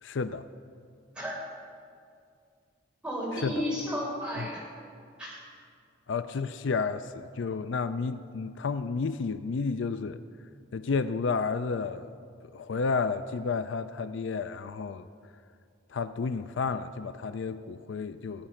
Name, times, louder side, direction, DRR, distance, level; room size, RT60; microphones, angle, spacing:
voice 1, 0.0-0.4 3.4-3.5 6.1-10.2 10.7-12.1 12.5-15.1 15.9-18.5, left 4 dB, 70° left, 12 dB, 0.4 m, -31 dB
voice 2, 3.0-4.7 5.2-5.4, equal, 5° right, -5 dB, 4.0 m, -33 dB
19.5 x 8.7 x 5.7 m, 2.3 s
head